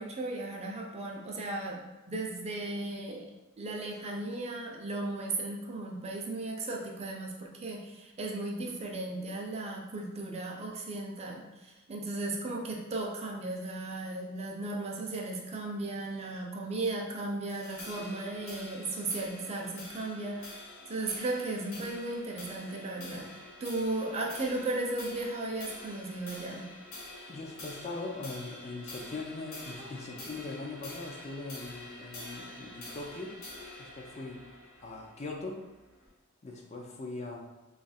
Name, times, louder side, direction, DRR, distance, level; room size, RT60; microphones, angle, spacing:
voice 1, 0.0-3.3 3.6-26.7 29.8-29.9 30.2-30.3, right 2 dB, 30° right, -1 dB, 0.5 m, -36 dB
sound 1, 17.5-36.1, left 2 dB, 80° left, 1.1 m, -47 dB
voice 2, 27.3-33.3 33.8-34.4 34.8-35.6 36.4-37.4, left 3 dB, 30° left, 0 dB, 0.4 m, -40 dB
3.0 x 2.4 x 4.1 m, 1.0 s
head